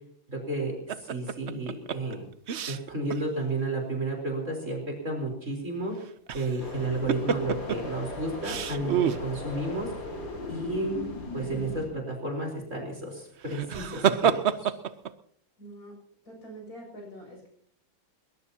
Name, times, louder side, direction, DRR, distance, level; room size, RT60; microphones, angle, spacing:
voice 1, 0.3-0.7 1.0-2.2 2.7-5.9 6.3-9.9 10.5-11.1 11.3-14.7, right 2 dB, 40° right, 1 dB, 4.5 m, -32 dB
sound 1, 0.9-3.2 3.6-3.7 6.0-6.7 7.1-7.8 8.4-9.2 13.4-15.1, right 8 dB, 65° right, 0.6 m, -28 dB
sound 2, 6.6-11.9, left 2 dB, 80° left, 5.3 m, -38 dB
voice 2, 15.6-15.9 16.3-17.5, right 1 dB, 45° left, 0 dB, 7.7 m, -45 dB
21.5 x 20.5 x 2.9 m, 0.64 s
omnidirectional pair, 2.1 m